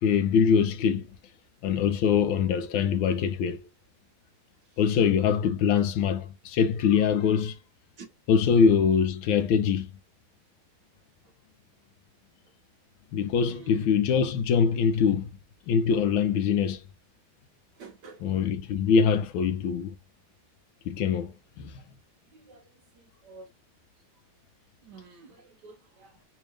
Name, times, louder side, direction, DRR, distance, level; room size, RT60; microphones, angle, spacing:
voice 1, 0.0-1.1 1.6-3.6 4.8-7.6 8.3-9.9 13.1-15.3 15.7-16.8 18.2-19.9 20.9-21.8, left 6 dB, 80° left, 1.3 m, -23 dB
voice 2, 13.5-13.8 17.8-18.2 22.5-22.6 23.2-23.5 24.9-26.1, right 4 dB, 70° right, 1.0 m, -47 dB
3.5 x 2.7 x 3.2 m
omnidirectional pair, 2.3 m